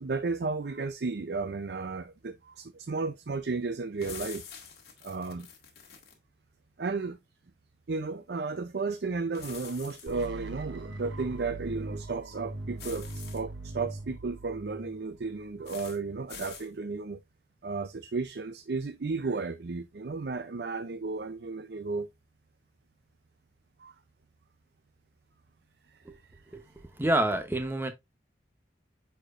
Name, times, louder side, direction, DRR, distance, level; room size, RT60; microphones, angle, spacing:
voice 1, 0.0-4.4 5.0-5.5 6.8-7.2 7.9-17.2 17.6-22.1 23.8-23.9 25.9-26.0, right 4 dB, 65° right, 0.5 m, -34 dB
sound 1, 4.0-6.2 9.3-10.3 12.8-13.4 15.6-16.0 16.3-16.7, left 7 dB, 55° left, 2.0 m, -46 dB
sound 2, 10.1-16.0, right 2 dB, 85° right, 1.2 m, -41 dB
voice 2, 27.0-27.9, right 1 dB, 10° right, 0.9 m, -27 dB
9.9 x 4.4 x 2.5 m
head